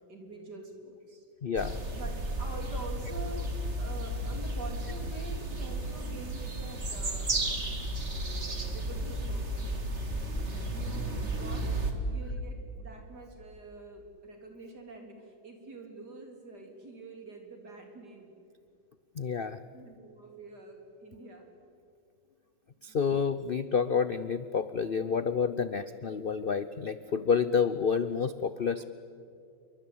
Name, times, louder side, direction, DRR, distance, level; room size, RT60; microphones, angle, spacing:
voice 1, 0.1-1.3 2.0-7.3 8.0-9.6 10.6-18.3 19.7-21.5 22.9-23.0, right 2 dB, 60° right, 3 dB, 4.3 m, -46 dB
voice 2, 1.4-1.8 19.2-19.6 22.8-28.9, left 6 dB, 80° left, 13 dB, 0.5 m, -29 dB
sound 1, 1.6-11.9, right 1 dB, 35° right, 2.5 m, -33 dB
27.5 x 23.5 x 8.6 m, 2.5 s
omnidirectional pair, 2.0 m